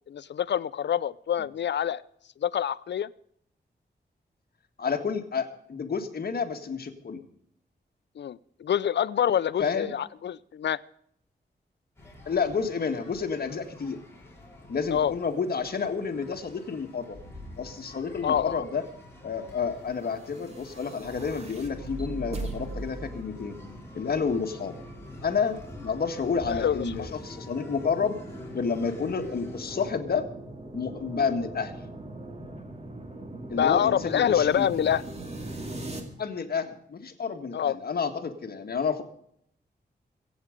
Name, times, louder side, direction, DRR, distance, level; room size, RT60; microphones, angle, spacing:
voice 1, 0.1-2.0 2.4-3.1 8.2-10.8 14.9-15.1 18.2-18.6 26.5-27.1 33.5-35.0 37.5-37.8, left 9 dB, 80° left, 18 dB, 0.6 m, -26 dB
voice 2, 4.8-7.2 9.6-9.9 12.3-14.0 14.7-17.2 17.6-18.9 19.2-23.6 23.9-24.8 25.2-28.2 28.5-30.3 30.7-31.7 33.5-34.7 36.0-39.0, left 5 dB, 60° left, 5 dB, 1.8 m, -30 dB
sound 1, 12.0-29.9, left 1 dB, 15° left, 4.6 m, -46 dB
sound 2, 20.2-36.0, right 2 dB, 35° right, 2.4 m, -41 dB
24.5 x 8.6 x 5.1 m, 0.68 s
wide cardioid pair, 160°, 18 cm